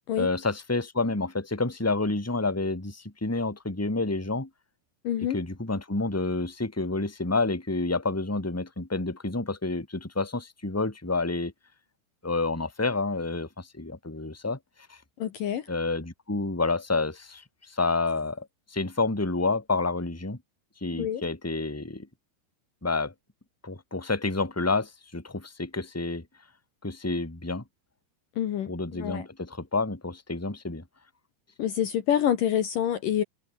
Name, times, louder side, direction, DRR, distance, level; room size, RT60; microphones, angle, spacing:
voice 1, 0.2-4.5 5.2-11.5 12.2-14.6 14.9-15.0 15.7-20.4 20.8-22.1 22.8-23.1 23.6-26.2 26.8-27.6 28.7-30.8, left 3 dB, 5° left, 3.0 m, -29 dB
voice 2, 5.0-5.4 15.2-15.7 21.0-21.2 28.4-29.3 31.6-33.2, left 10 dB, 65° left, 2.9 m, -27 dB
omnidirectional pair, 4.7 m